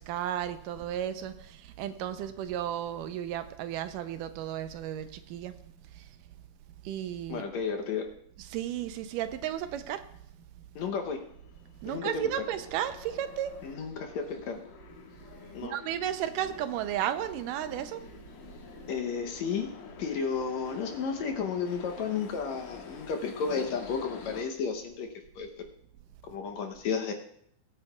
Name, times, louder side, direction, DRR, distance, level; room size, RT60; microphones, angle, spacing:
voice 1, 0.0-1.3 1.8-5.5 6.9-7.4 8.5-10.0 11.8-13.5 15.7-18.0, right 11 dB, 90° right, 10 dB, 2.2 m, -33 dB
voice 2, 7.3-8.1 10.8-11.2 11.9-12.2 13.6-14.6 15.5-15.7 18.9-19.7 20.0-25.1 25.4-25.7 26.3-27.1, left 6 dB, 70° left, 3 dB, 1.9 m, -32 dB
sound 1, 10.9-24.4, left 5 dB, 90° left, 2.9 m, -48 dB
21.0 x 8.8 x 2.3 m, 0.69 s
omnidirectional pair, 3.8 m